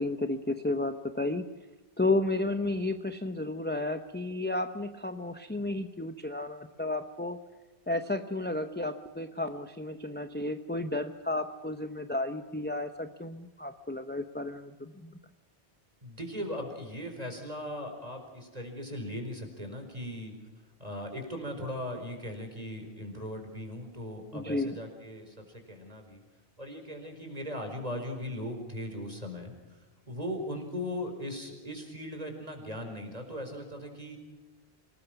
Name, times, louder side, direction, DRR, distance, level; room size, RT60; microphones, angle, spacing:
voice 1, 0.0-1.5 2.0-7.4 7.9-15.1 24.3-24.8, left 2 dB, 10° left, 7 dB, 0.8 m, -32 dB
voice 2, 16.0-20.3 20.8-26.2 26.6-34.2, left 1 dB, 35° right, 4 dB, 4.6 m, -39 dB
26.0 x 19.5 x 6.0 m, 1.2 s
omnidirectional pair, 1.1 m